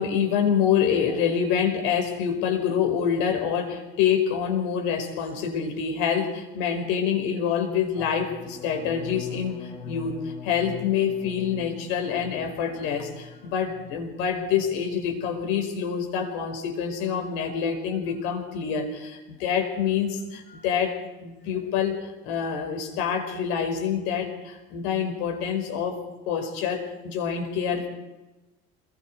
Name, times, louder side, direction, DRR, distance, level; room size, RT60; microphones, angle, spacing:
voice 1, 0.0-26.0 26.3-27.9, left 7 dB, 80° left, 5 dB, 5.2 m, -26 dB
sound 1, 8.2-14.1 14.4-14.9 15.2-15.6, left 8 dB, 25° left, 1.3 m, -42 dB
28.0 x 21.5 x 4.8 m, 1.1 s
cardioid pair, 180°, 20 cm